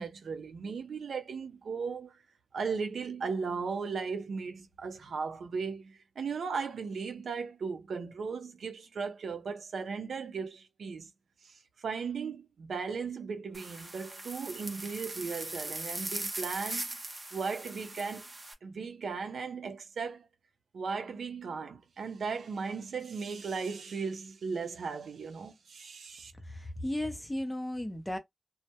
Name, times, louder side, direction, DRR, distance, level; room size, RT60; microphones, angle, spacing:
voice 1, 0.0-2.2 2.5-11.1 11.4-16.9 17.3-18.3 18.6-20.3 20.7-26.3, right 5 dB, 80° right, 0.5 m, -37 dB
sound 1, 13.5-18.5, right 2 dB, 30° right, 0.6 m, -40 dB
voice 2, 26.4-28.2, left 1 dB, 10° left, 0.6 m, -35 dB
2.2 x 2.0 x 2.8 m
wide cardioid pair, 95°, 0 cm